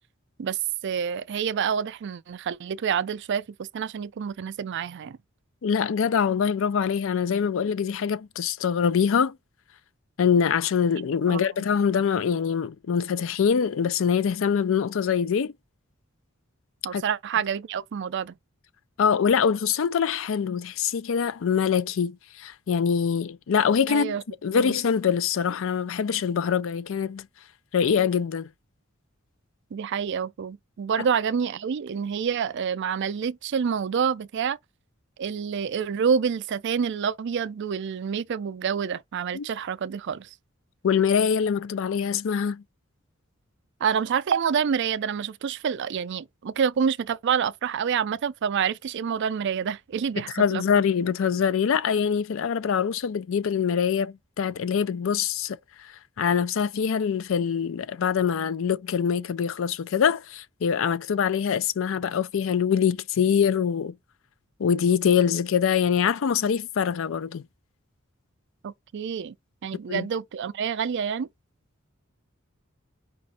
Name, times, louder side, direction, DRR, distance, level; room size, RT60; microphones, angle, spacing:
voice 1, 0.4-5.2 11.3-11.4 16.8-18.3 23.9-24.2 24.5-24.7 29.7-34.6 35.2-40.3 43.8-50.6 68.6-69.3 69.6-71.3, right 7 dB, 60° right, 0.4 m, -27 dB
voice 2, 5.6-9.4 10.2-15.5 16.9-17.0 19.0-24.2 24.4-27.3 27.7-28.5 39.3-39.5 40.8-42.6 50.3-63.9 64.6-67.4 69.9-70.1, left 7 dB, 70° left, 0.4 m, -24 dB
5.2 x 2.5 x 4.1 m
head